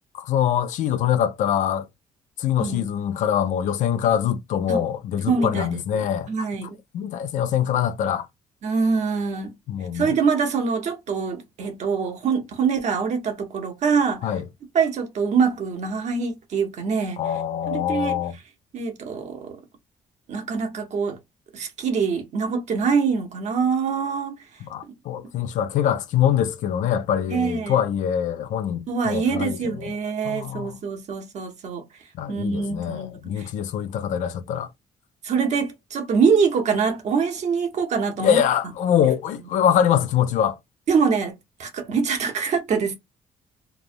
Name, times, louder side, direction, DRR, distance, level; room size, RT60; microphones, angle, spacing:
voice 1, 0.1-1.9 2.4-6.3 6.9-8.3 9.7-10.1 14.2-14.4 17.2-18.3 24.7-29.9 30.2-30.8 32.2-34.7 38.2-40.6, left 9 dB, 70° left, 0.4 m, -24 dB
voice 2, 5.2-6.8 8.6-9.5 9.9-14.3 14.7-17.2 17.7-18.2 18.7-19.6 20.3-21.2 21.5-24.4 27.3-27.8 28.9-31.8 32.3-33.5 33.9-34.1 35.2-38.4 39.0-39.1 40.9-41.3 41.6-42.9, right 5 dB, 60° right, 1.0 m, -24 dB
3.1 x 2.0 x 2.5 m
supercardioid pair, 70°, 13 cm